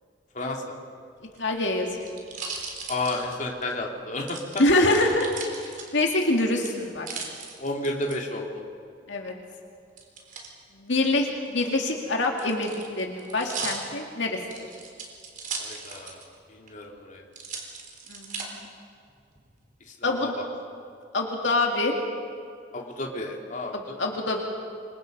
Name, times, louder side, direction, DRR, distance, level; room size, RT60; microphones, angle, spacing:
voice 1, 0.3-0.7 2.9-4.4 7.6-8.5 15.6-16.2 16.5-17.2 20.0-20.4 22.7-24.0, left 2 dB, 45° left, 0 dB, 3.0 m, -32 dB
sound 1, 1.2-3.7 4.3-6.2 6.6-8.1 10.0-10.5 11.4-16.3 16.7-16.8 17.3-18.5 19.1-19.6, right 5 dB, 45° right, 4.0 m, -38 dB
voice 2, 1.4-2.1 4.6-5.3 5.6-7.1 9.1-9.3 10.8-14.4 18.1-18.7 20.0-20.3 21.1-21.9 23.7-24.4, left 2 dB, 75° left, 1 dB, 2.3 m, -25 dB
28.0 x 24.0 x 5.4 m, 2.2 s
head